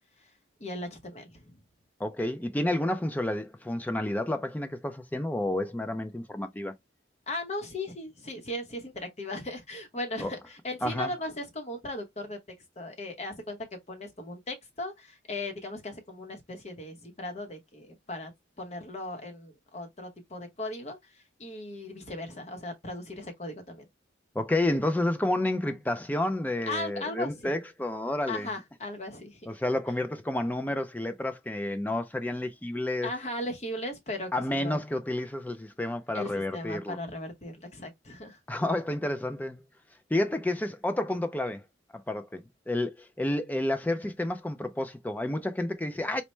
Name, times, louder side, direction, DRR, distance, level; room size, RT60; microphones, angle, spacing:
voice 1, 0.6-1.6 7.3-12.4 12.8-18.3 18.6-23.8 26.7-27.5 28.3-29.4 33.0-34.3 34.6-34.8 36.1-38.4, left 1 dB, 35° left, 0.8 m, -37 dB
voice 2, 2.0-6.7 10.2-10.3 10.8-11.1 24.4-28.5 29.5-33.1 34.3-37.0 38.5-39.6 40.1-41.6 41.9-46.2, left 1 dB, 10° left, 0.3 m, -30 dB
4.2 x 2.1 x 3.1 m
head